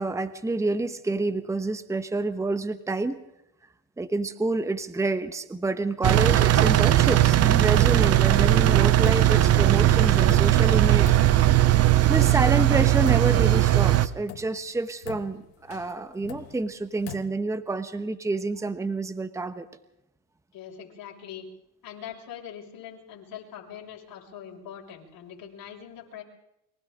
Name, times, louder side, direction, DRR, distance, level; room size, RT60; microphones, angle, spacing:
voice 1, 0.0-3.2 4.0-11.1 12.1-19.7, right 2 dB, 5° right, 11 dB, 1.1 m, -28 dB
Engine, 6.0-14.1, right 13 dB, 35° right, 0.8 m, -19 dB
sound 1, 9.1-9.6 9.8-9.9 10.3-11.8 12.3-12.8 13.1-13.8 14.3-17.2, left 12 dB, 80° left, 2.0 m, -43 dB
voice 2, 20.5-21.5 21.8-26.2, left 9 dB, 50° left, 0 dB, 6.5 m, -42 dB
29.5 x 23.5 x 3.9 m, 0.87 s
supercardioid pair, 110°, 45 cm